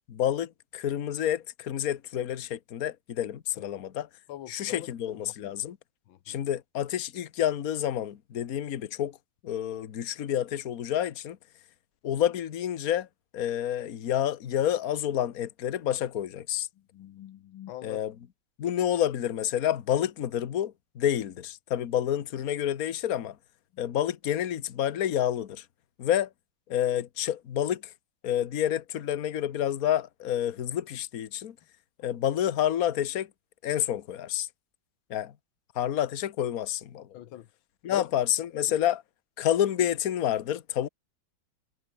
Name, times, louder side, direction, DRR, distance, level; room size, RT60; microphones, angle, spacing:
voice 1, 0.1-4.1 4.5-5.8 6.3-9.2 9.4-11.4 12.0-13.1 13.3-16.7 17.8-18.1 18.6-23.4 23.8-25.6 26.0-26.3 26.7-27.9 28.2-31.5 32.0-33.3 33.6-34.5 35.1-35.3 35.7-37.1 37.8-39.0 39.4-40.9, left 11 dB, 50° left, 1.5 m, -29 dB
voice 2, 4.3-5.5 6.1-6.4 16.9-18.0 37.1-37.5 37.9-38.1, left 13 dB, 80° left, 1.7 m, -42 dB
omnidirectional pair, 2.2 m